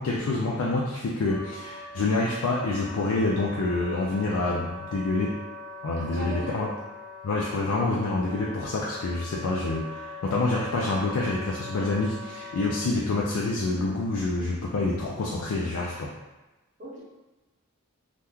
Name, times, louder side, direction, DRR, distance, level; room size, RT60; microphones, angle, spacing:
voice 1, 0.0-5.3 5.8-6.7 7.2-16.1, left 2 dB, 75° left, -3 dB, 0.4 m, -27 dB
Wind instrument woodwind instrument, 1.3-12.9, left 2 dB, 10° left, 0.8 m, -42 dB
voice 2, 6.0-6.6 16.8-17.0, right 1 dB, 35° right, -7 dB, 0.7 m, -37 dB
2.9 x 2.3 x 3.5 m, 1.1 s
head